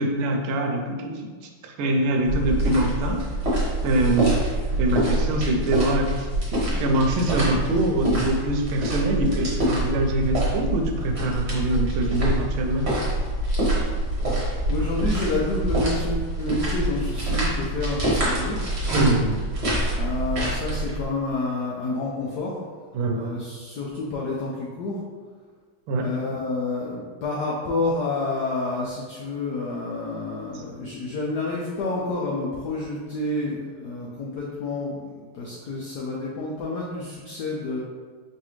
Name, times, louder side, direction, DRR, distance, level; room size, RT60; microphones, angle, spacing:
voice 1, 0.0-3.2 3.8-4.4 4.8-12.9 18.9-19.4 22.9-23.3 25.9-26.1, right 1 dB, 80° right, 3 dB, 1.4 m, -24 dB
sound 1, 2.3-21.0, right 1 dB, 40° right, 1.1 m, -26 dB
voice 2, 14.5-18.6 20.0-22.7 23.1-25.0 25.9-37.8, left 2 dB, 80° left, -4 dB, 0.9 m, -29 dB
4.6 x 3.2 x 3.1 m, 1.5 s
omnidirectional pair, 2.4 m